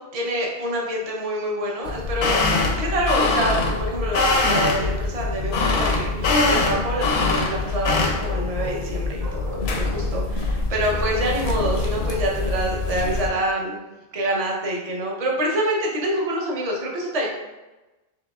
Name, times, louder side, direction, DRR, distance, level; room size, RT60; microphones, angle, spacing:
voice 1, 0.1-2.4 2.8-13.8 14.1-17.3, right 1 dB, 40° right, -2 dB, 0.8 m, -26 dB
sound 1, 1.9-13.3, left 3 dB, 80° left, 0.8 m, -23 dB
Bark, 3.4-5.0 5.5-7.2 7.8-8.8 9.2-10.1 10.9-12.6, equal, 60° right, 1.1 m, -37 dB
4.7 x 3.4 x 2.4 m, 1.1 s
omnidirectional pair, 1.1 m